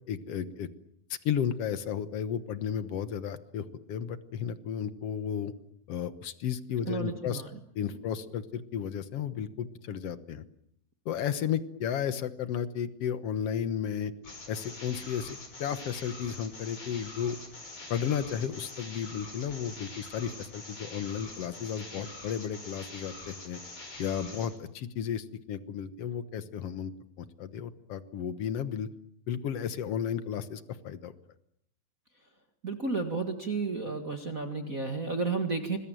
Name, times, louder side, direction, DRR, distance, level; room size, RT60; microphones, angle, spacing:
voice 1, 0.1-0.7 1.2-5.5 5.9-7.4 7.7-10.4 11.0-14.1 14.5-17.4 17.9-23.6 24.0-26.9 27.2-28.9 29.3-31.1, left 8 dB, 65° left, 13 dB, 1.6 m, -33 dB
voice 2, 6.9-7.5 7.8-8.0 32.6-35.8, right 4 dB, 35° right, 5 dB, 1.4 m, -32 dB
sound 1, 14.2-24.6, left 2 dB, 40° left, 6.5 m, -45 dB
26.0 x 21.5 x 9.1 m, 0.72 s
omnidirectional pair, 4.2 m